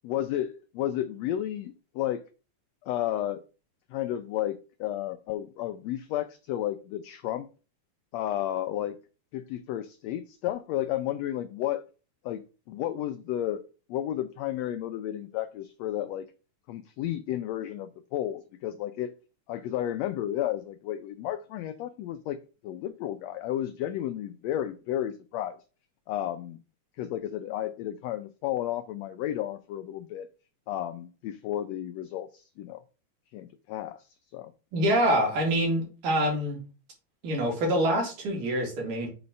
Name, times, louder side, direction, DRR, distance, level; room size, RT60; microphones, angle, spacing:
voice 1, 0.0-2.2 2.8-3.4 3.9-7.5 8.1-9.0 9.3-11.8 12.2-13.6 13.9-16.3 16.7-19.1 19.5-25.6 26.1-26.6 27.0-30.3 30.7-32.8 33.3-34.5, left 12 dB, 85° left, 1.5 m, -32 dB
voice 2, 34.7-36.6 37.2-39.1, equal, 80° right, 3.8 m, -25 dB
6.9 x 4.0 x 5.1 m
omnidirectional pair, 3.6 m